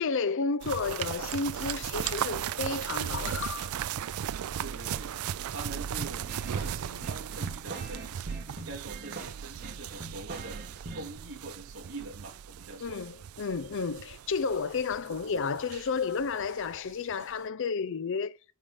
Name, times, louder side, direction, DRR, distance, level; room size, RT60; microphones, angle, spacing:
voice 1, 0.0-3.7 12.8-18.4, left 5 dB, 60° left, 0.5 m, -32 dB
sound 1, 0.6-16.8 17.1-17.2, right 9 dB, 80° right, 0.4 m, -37 dB
voice 2, 4.6-10.6 10.9-13.0, right 2 dB, 65° right, 2.7 m, -44 dB
sound 2, 6.0-11.2, right 2 dB, 50° right, 2.6 m, -43 dB
9.2 x 5.0 x 5.6 m
head